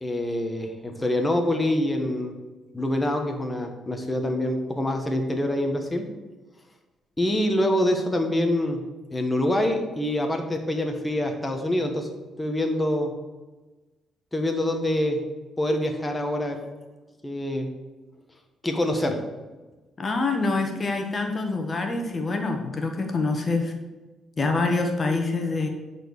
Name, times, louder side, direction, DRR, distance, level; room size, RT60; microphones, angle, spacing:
voice 1, 0.0-2.3 2.7-6.0 7.2-8.8 9.1-12.1 12.4-13.1 14.3-15.2 15.6-16.6 17.2-17.7 18.6-19.2, left 1 dB, 15° left, 3 dB, 1.3 m, -25 dB
voice 2, 20.0-23.7 24.4-25.7, left 3 dB, 35° left, 4 dB, 1.3 m, -26 dB
10.0 x 4.5 x 6.5 m, 1.2 s
cardioid pair, 90°, 0 cm